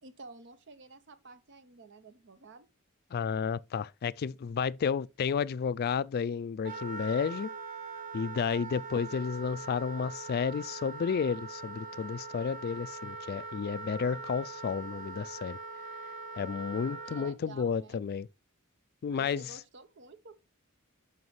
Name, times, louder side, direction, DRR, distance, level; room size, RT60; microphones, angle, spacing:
voice 1, 0.0-2.7 16.7-18.0 19.1-20.4, right 3 dB, 55° right, 0.8 m, -51 dB
voice 2, 3.1-7.5 8.1-15.6 16.3-18.3 19.0-19.5, left 6 dB, 45° left, 0.3 m, -32 dB
Wind instrument woodwind instrument, 6.6-17.3, right 3 dB, 40° right, 1.4 m, -42 dB
9.4 x 5.9 x 3.1 m
head